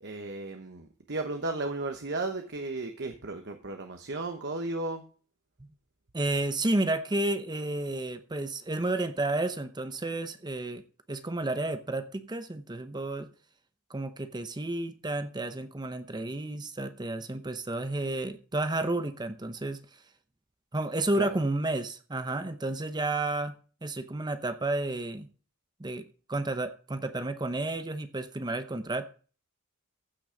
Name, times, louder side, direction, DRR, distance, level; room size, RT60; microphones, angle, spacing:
voice 1, 0.0-5.0 21.1-21.3, right 2 dB, 50° right, 5 dB, 1.1 m, -34 dB
voice 2, 6.1-10.8 11.1-13.3 13.9-19.8 20.7-23.5 23.8-25.3 25.8-29.1, right 2 dB, 20° right, 10 dB, 0.7 m, -31 dB
15.0 x 6.1 x 5.1 m, 0.39 s
head